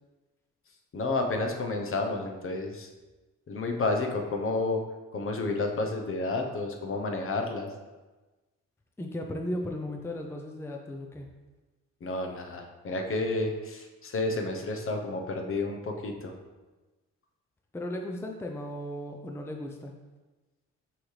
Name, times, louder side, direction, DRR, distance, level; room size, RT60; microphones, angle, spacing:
voice 1, 0.9-2.9 3.5-4.8 5.1-7.7 12.0-16.3, left 2 dB, 45° left, 4 dB, 0.9 m, -30 dB
voice 2, 9.0-11.3 17.7-19.9, left 1 dB, 10° left, 2 dB, 0.5 m, -36 dB
6.0 x 4.8 x 3.3 m, 1.2 s
cardioid pair, 90°, 30 cm